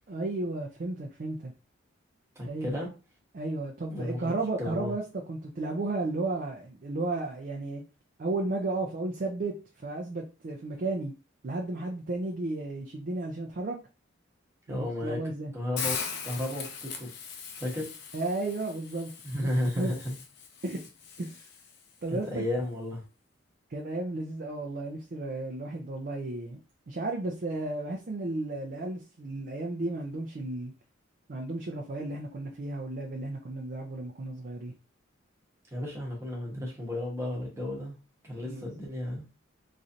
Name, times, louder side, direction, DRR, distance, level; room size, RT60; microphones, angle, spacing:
voice 1, 0.1-1.5 2.4-2.7 3.3-7.8 8.2-9.5 9.8-11.1 11.4-13.8 14.7-15.5 18.1-19.5 19.8-19.9 20.6-20.8 21.2-21.5 22.0-22.4 23.7-26.6 26.9-30.7 31.3-34.7 38.4-38.8, right 2 dB, 45° right, 0 dB, 0.4 m, -33 dB
voice 2, 2.4-2.9 3.9-4.3 4.6-4.9 14.7-15.2 15.5-17.1 17.6-17.9 19.2-20.2 22.1-23.0 35.7-37.9 38.2-39.3, left 1 dB, 15° right, -3 dB, 0.9 m, -33 dB
Hiss, 15.8-21.8, left 6 dB, 55° left, 0.5 m, -40 dB
3.1 x 2.5 x 2.6 m, 0.32 s
head